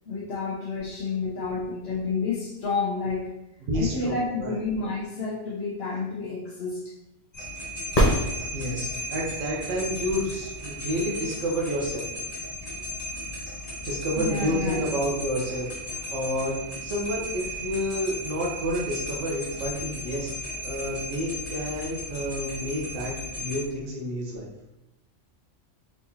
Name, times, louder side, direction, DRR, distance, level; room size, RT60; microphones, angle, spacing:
voice 1, 0.0-3.3 3.7-6.9 14.2-14.9, left 4 dB, 60° left, -6 dB, 1.0 m, -30 dB
voice 2, 3.6-4.6 8.5-12.0 13.8-16.6 16.8-24.5, equal, 75° right, -2 dB, 1.2 m, -30 dB
sound 1, 7.3-23.6, left 1 dB, 75° left, 1.8 m, -35 dB
sound 2, 7.9-9.1 13.0-13.1, equal, 35° left, 0.8 m, -23 dB
4.4 x 3.6 x 2.7 m, 0.90 s
omnidirectional pair, 1.3 m